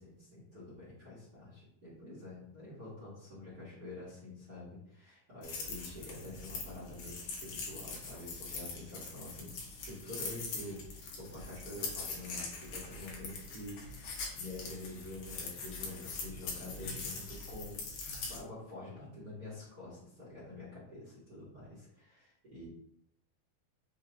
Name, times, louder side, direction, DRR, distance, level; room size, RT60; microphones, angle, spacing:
voice 1, 0.0-22.7, left 2 dB, 40° right, -9 dB, 1.6 m, -47 dB
sound 1, 5.4-18.4, left 4 dB, 75° left, 1.7 m, -42 dB
5.6 x 2.9 x 2.9 m, 0.76 s
omnidirectional pair, 4.2 m